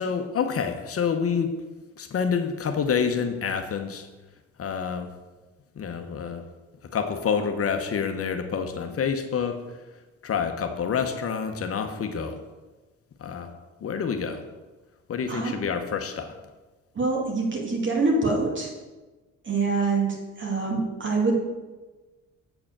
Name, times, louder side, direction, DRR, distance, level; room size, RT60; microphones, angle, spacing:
voice 1, 0.0-1.5 2.0-4.1 4.6-5.1 5.7-6.5 6.8-12.4 13.2-13.5 13.8-14.5 15.1-16.4, left 6 dB, 50° left, 6 dB, 0.9 m, -28 dB
voice 2, 16.9-18.7 19.4-21.3, right 3 dB, 40° right, -1 dB, 2.4 m, -25 dB
7.8 x 4.7 x 7.3 m, 1.2 s
cardioid pair, 90°, 30 cm